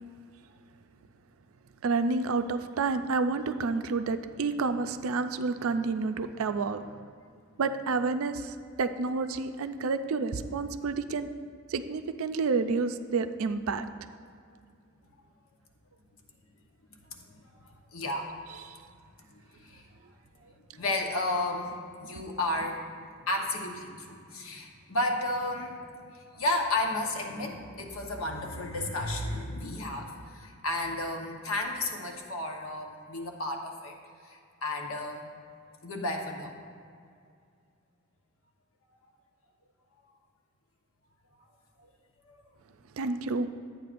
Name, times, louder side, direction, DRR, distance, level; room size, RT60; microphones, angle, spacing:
voice 1, 1.8-6.9 7.6-11.3 11.7-13.9 43.0-43.5, right 4 dB, 75° right, 9 dB, 0.4 m, -29 dB
voice 2, 17.1-18.8 19.3-19.9 20.4-21.7 22.0-25.8 26.1-33.9 34.2-35.3 35.8-36.6 42.2-42.3, left 2 dB, 75° left, 2 dB, 1.1 m, -33 dB
12.0 x 8.6 x 2.6 m, 2.3 s
head